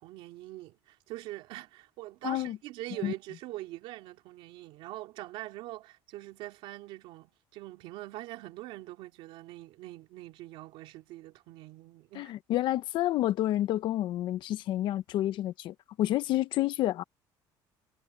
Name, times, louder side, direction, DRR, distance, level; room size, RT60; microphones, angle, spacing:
voice 1, 0.0-12.3, right 17 dB, 80° right, 2.6 m, -43 dB
voice 2, 2.2-2.6 3.0-3.1 12.1-17.0, left 14 dB, 60° left, 0.9 m, -29 dB
cardioid pair, 150°, 9 cm